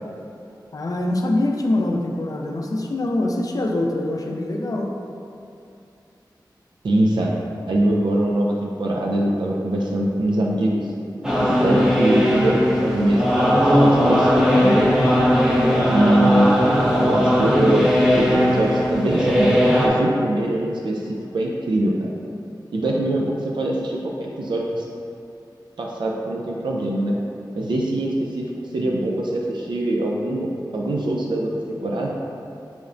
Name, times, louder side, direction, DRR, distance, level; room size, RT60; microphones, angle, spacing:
voice 1, 0.7-4.9, left 1 dB, 50° left, 1 dB, 0.4 m, -24 dB
voice 2, 6.8-7.3 7.7-10.9 11.4-15.0 15.9-16.5 17.0-22.1 22.7-24.9 25.8-27.2 27.5-28.5 28.7-32.1, right 1 dB, 80° right, -2 dB, 0.3 m, -23 dB
sound 1, 11.2-19.9, equal, 10° right, 0.7 m, -18 dB
5.6 x 2.0 x 2.5 m, 2.6 s
wide cardioid pair, 60°, 8 cm